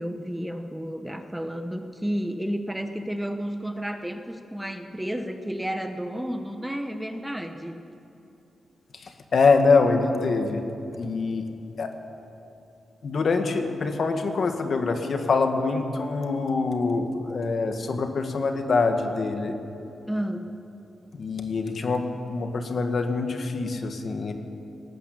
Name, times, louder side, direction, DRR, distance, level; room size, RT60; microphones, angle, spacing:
voice 1, 0.0-7.8 20.1-20.5, equal, 5° right, 7 dB, 0.9 m, -31 dB
voice 2, 8.9-10.6 11.0-11.5 11.8-11.9 13.0-19.5 21.1-24.3, left 4 dB, 50° left, 6 dB, 1.9 m, -24 dB
19.0 x 18.5 x 8.6 m, 3.0 s
wide cardioid pair, 150°, 0 cm